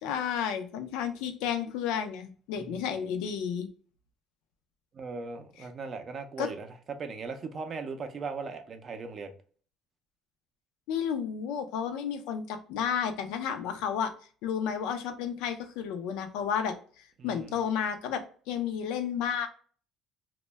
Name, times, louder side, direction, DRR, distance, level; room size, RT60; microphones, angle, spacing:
voice 1, 0.0-3.7 6.4-6.5 10.9-14.1 14.4-18.2 18.5-19.5, left 8 dB, 85° left, 0.4 m, -32 dB
voice 2, 4.9-9.3 17.2-17.5, right 4 dB, 40° right, 0.4 m, -38 dB
2.1 x 2.0 x 3.2 m
cardioid pair, 110°, 0 cm